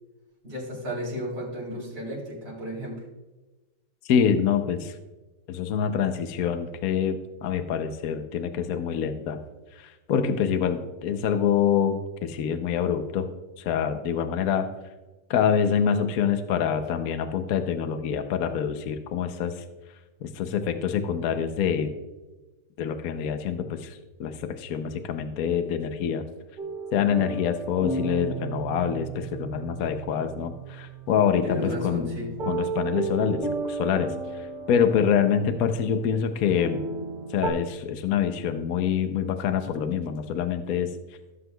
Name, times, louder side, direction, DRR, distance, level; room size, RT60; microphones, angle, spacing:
voice 1, 0.4-3.0 31.4-32.3, equal, 55° right, -4 dB, 4.3 m, -34 dB
voice 2, 4.0-5.0 5.5-9.4 9.7-13.3 13.6-14.7 15.3-19.6 20.2-22.0 22.8-26.2 26.9-32.1 32.5-36.8 37.3-40.9, left 8 dB, 65° left, 7 dB, 1.0 m, -26 dB
sound 1, 26.6-37.5, right 3 dB, 75° right, 3.8 m, -34 dB
16.5 x 7.9 x 2.3 m, 1.1 s
omnidirectional pair, 1.9 m